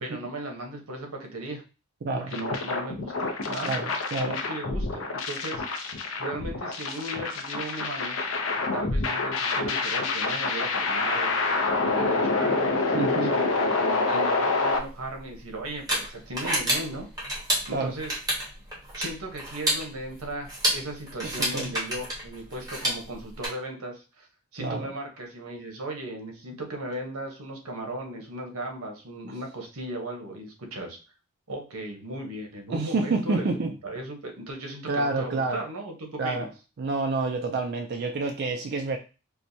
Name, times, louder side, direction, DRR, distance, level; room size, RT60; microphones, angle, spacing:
voice 1, 0.0-1.6 2.1-3.7 4.2-8.2 8.7-17.1 17.7-18.2 18.9-24.3 24.5-31.0 31.5-36.5, right 1 dB, 90° right, 1.0 m, -36 dB
voice 2, 2.0-2.3 3.7-4.4 12.9-13.3 17.7-17.9 21.2-21.7 24.6-24.9 32.7-33.7 34.9-35.6 36.2-36.5 36.8-39.0, right 3 dB, 50° right, 0.4 m, -28 dB
sound 1, 2.3-14.8, left 3 dB, 65° left, 0.6 m, -27 dB
sound 2, 14.8-23.5, right 1 dB, 15° right, 1.3 m, -30 dB
4.6 x 2.2 x 2.6 m
head